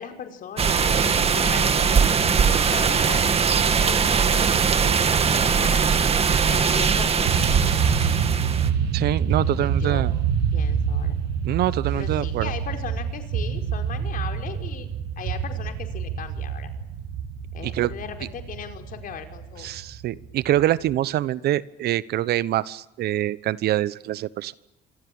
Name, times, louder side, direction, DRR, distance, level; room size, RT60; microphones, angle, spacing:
voice 1, 0.0-3.3 3.8-5.9 6.4-7.4 9.3-10.1 10.5-11.2 11.9-14.9 15.2-16.7 17.5-19.7, left 7 dB, 55° left, 5 dB, 5.2 m, -38 dB
sound 1, 0.6-8.7, right 6 dB, 35° right, 2.2 m, -21 dB
sound 2, 5.3-6.4 7.3-20.9, right 7 dB, 85° right, 7.7 m, -27 dB
voice 2, 8.9-10.1 11.4-12.5 17.6-17.9 19.6-24.5, right 13 dB, 70° right, 18 dB, 1.1 m, -25 dB
27.0 x 24.0 x 8.9 m, 0.92 s
cardioid pair, 110°, 17 cm